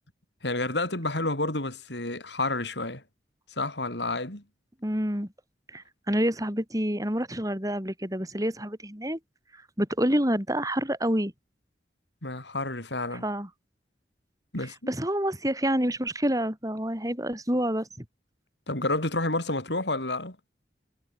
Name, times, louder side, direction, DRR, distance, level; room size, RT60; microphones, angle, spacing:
voice 1, 0.4-3.0 3.5-4.4 12.2-13.2 14.5-14.9 18.7-20.4, left 2 dB, 85° left, 7.2 m, -30 dB
voice 2, 4.8-5.3 5.7-9.2 9.8-11.3 13.1-13.5 14.9-18.0, equal, 20° right, 7.4 m, -28 dB
head